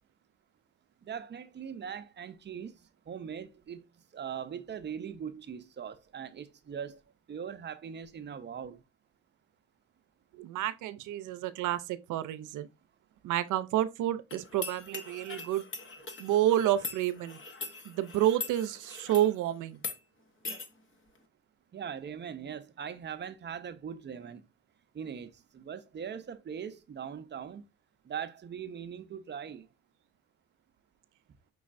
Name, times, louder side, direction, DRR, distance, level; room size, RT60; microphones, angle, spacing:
voice 1, 1.0-7.0 7.3-8.8 21.7-24.4 24.9-27.6 28.0-29.7, right 7 dB, 35° right, 0.5 m, -41 dB
voice 2, 10.3-12.7 13.2-15.6 16.2-17.4 17.8-19.8, right 12 dB, 80° right, 0.5 m, -29 dB
sound 1, 14.3-19.3 19.7-20.0 20.4-20.7, left 4 dB, 40° left, 0.8 m, -41 dB
5.3 x 3.1 x 2.5 m
cardioid pair, 90°, 30 cm